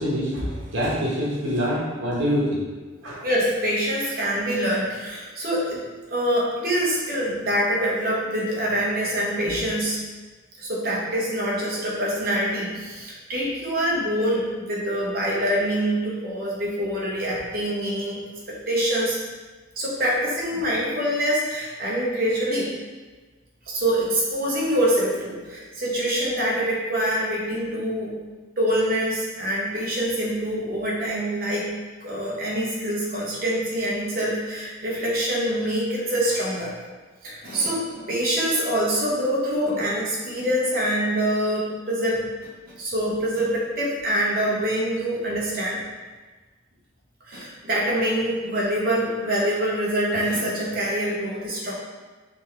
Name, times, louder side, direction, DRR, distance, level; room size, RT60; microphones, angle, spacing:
voice 1, 0.0-2.6 3.0-3.2, equal, 80° right, -5 dB, 1.2 m, -25 dB
voice 2, 3.2-5.8 6.1-10.0 10.6-18.2 18.5-19.2 19.8-22.7 23.7-28.2 28.6-31.7 32.0-36.7 37.2-45.8 47.3-51.7, equal, 45° right, -5 dB, 1.0 m, -25 dB
4.2 x 3.4 x 3.2 m, 1.3 s
head